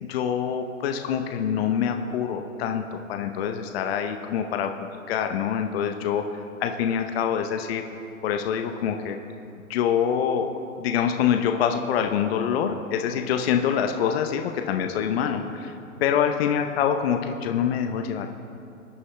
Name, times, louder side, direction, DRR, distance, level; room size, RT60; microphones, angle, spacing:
voice 1, 0.0-4.7 5.1-6.2 6.6-7.8 8.2-9.2 9.7-10.5 10.8-15.7 16.0-18.3, left 8 dB, 50° left, 5 dB, 0.8 m, -25 dB
20.5 x 9.6 x 2.2 m, 2.8 s
hypercardioid pair, 120°, 41 cm